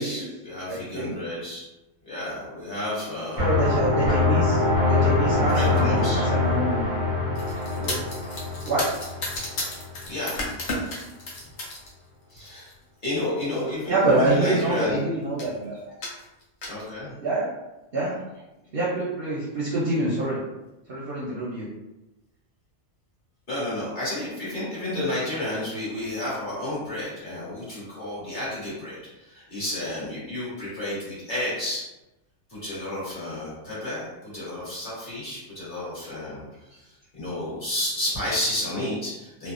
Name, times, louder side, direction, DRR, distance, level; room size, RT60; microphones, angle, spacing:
voice 1, 0.0-1.7 2.0-3.5 5.5-6.3 10.1-10.4 12.3-12.7 13.0-15.0 16.7-17.2 23.5-31.8 32.5-36.4 36.8-36.9 37.1-39.5, left 1 dB, 40° left, -9 dB, 1.2 m, -31 dB
voice 2, 0.7-1.2 3.4-4.6 4.8-6.9 7.8-8.0 8.7-8.9 13.9-15.8 17.2-17.5 17.9-18.2 18.7-20.4 20.9-21.7, right 2 dB, 60° right, -6 dB, 0.7 m, -26 dB
sound 1, 3.4-10.1, left 3 dB, 20° left, 0.8 m, -24 dB
sound 2, 7.3-11.9 12.3-12.7 13.6-13.7 14.0-14.1 14.3-14.9 15.4-15.6 16.0-16.8, left 2 dB, 60° left, 0.9 m, -33 dB
2.7 x 2.0 x 2.4 m, 0.98 s
omnidirectional pair, 1.4 m